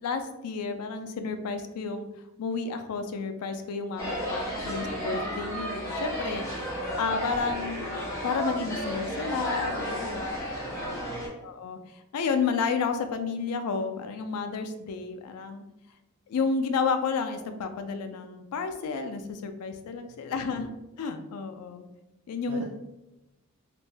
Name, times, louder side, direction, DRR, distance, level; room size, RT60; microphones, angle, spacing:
voice 1, 0.0-2.1 2.4-7.8 8.2-10.2 11.4-11.8 12.1-15.6 16.3-20.7 21.0-21.9 22.3-22.6, left 5 dB, 80° left, 7 dB, 0.4 m, -31 dB
sound 1, 4.0-11.3, equal, 15° left, 0.9 m, -32 dB
voice 2, 10.3-11.3 20.1-20.3 22.5-22.6, right 5 dB, 75° right, -2 dB, 0.4 m, -47 dB
2.5 x 2.1 x 3.2 m, 0.94 s
head